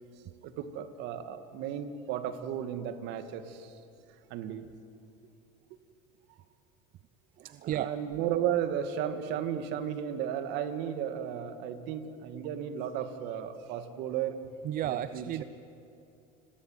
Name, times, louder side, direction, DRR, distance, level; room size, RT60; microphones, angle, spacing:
voice 1, 0.4-3.7 4.3-4.7 7.7-14.4 15.1-15.4, right 9 dB, 65° right, 9 dB, 2.4 m, -34 dB
voice 2, 7.4-7.9 14.6-15.4, right 12 dB, 45° right, 14 dB, 0.8 m, -33 dB
29.5 x 21.5 x 9.4 m, 2.7 s
hypercardioid pair, 85°, 19 cm